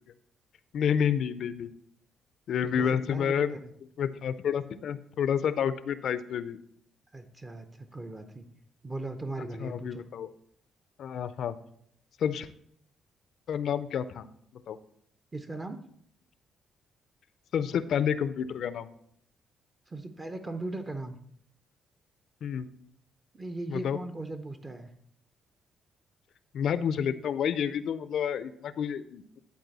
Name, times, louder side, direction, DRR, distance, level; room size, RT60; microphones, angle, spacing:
voice 1, 0.7-1.7 2.5-3.5 4.0-6.6 9.6-10.3 11.0-11.6 12.2-12.5 13.5-14.3 14.7-14.8 17.5-18.9 22.4-22.7 23.7-24.0 26.5-29.4, left 8 dB, 65° left, 14 dB, 0.4 m, -29 dB
voice 2, 2.6-3.7 7.1-8.5 8.8-10.0 15.3-15.9 19.9-21.2 23.3-24.9, right 2 dB, 25° right, 8 dB, 0.6 m, -38 dB
11.0 x 4.2 x 4.0 m, 0.68 s
cardioid pair, 90°, 0 cm